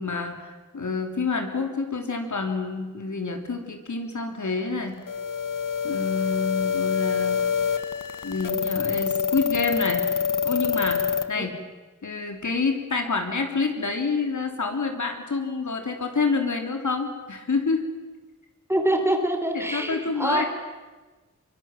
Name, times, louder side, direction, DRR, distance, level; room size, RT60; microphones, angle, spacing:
voice 1, 0.0-5.0 5.8-7.4 8.2-10.1 10.4-11.6 12.0-17.8 19.7-20.4, left 4 dB, 65° left, 4 dB, 3.3 m, -28 dB
sound 1, 5.1-11.2, left 7 dB, 85° left, 1.5 m, -26 dB
voice 2, 18.7-20.5, right 1 dB, 10° right, 5 dB, 4.0 m, -25 dB
23.5 x 23.0 x 7.5 m, 1.2 s
wide cardioid pair, 70°, 31 cm